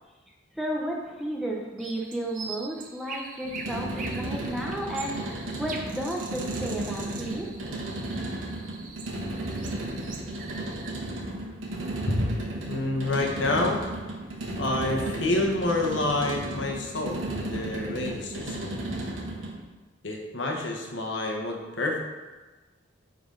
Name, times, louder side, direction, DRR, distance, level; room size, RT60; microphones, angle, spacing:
voice 1, 0.5-7.5 8.1-8.5, right 1 dB, ahead, -2 dB, 0.7 m, -33 dB
sound 1, 1.8-10.9, right 4 dB, 40° right, 0.7 m, -43 dB
sound 2, 3.4-19.6, right 1 dB, 85° right, 1.3 m, -34 dB
voice 2, 12.7-13.8 14.6-18.8 20.0-22.0, left 2 dB, 70° left, 0 dB, 1.1 m, -28 dB
9.2 x 4.0 x 3.9 m, 1.2 s
head